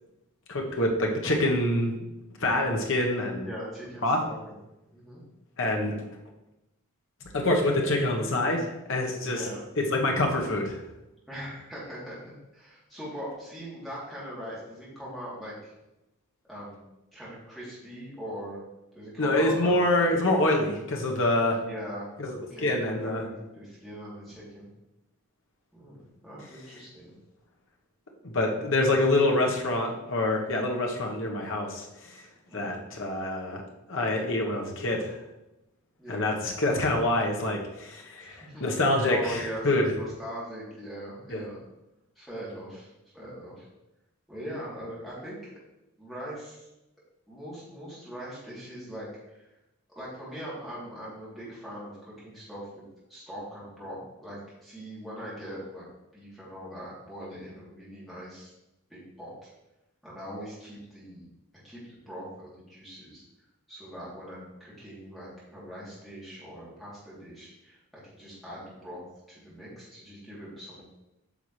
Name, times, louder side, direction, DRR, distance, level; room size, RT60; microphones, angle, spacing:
voice 1, 0.5-2.0 2.4-3.5 4.0-4.2 5.6-6.0 7.3-9.4 9.9-10.8 19.2-21.6 22.2-22.4 22.6-23.2 28.2-32.1 32.5-33.6 33.9-35.1 36.1-39.9 41.3-41.4, left 1 dB, 60° left, 1 dB, 1.2 m, -26 dB
voice 2, 3.5-4.6 4.9-5.2 9.2-9.6 11.3-15.7 16.5-16.8 17.1-18.6 18.9-20.3 21.6-22.1 22.3-24.7 25.7-27.1 32.5-32.8 36.0-36.3 38.2-41.6 42.1-43.6 44.3-45.5 46.0-46.7 47.3-49.5 49.9-52.8 53.1-55.8 56.1-58.5 58.9-59.5 60.0-61.3 61.6-63.2 63.7-70.8, equal, ahead, -9 dB, 3.1 m, -41 dB
9.1 x 5.9 x 3.3 m, 0.94 s
head